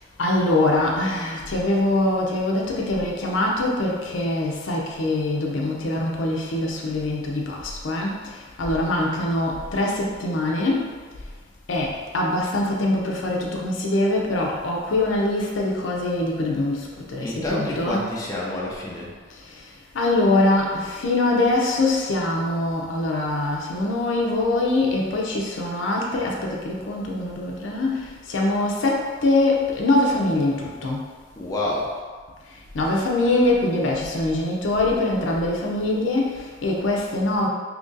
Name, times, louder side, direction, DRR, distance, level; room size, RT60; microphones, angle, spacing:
voice 1, 0.2-10.9 11.7-18.1 19.5-19.6 19.9-31.1 32.7-37.5, left 2 dB, 75° left, -1 dB, 0.5 m, -23 dB
voice 2, 17.2-19.1 31.4-32.0, left 1 dB, 20° left, -5 dB, 0.5 m, -28 dB
2.9 x 2.6 x 3.8 m, 1.5 s
head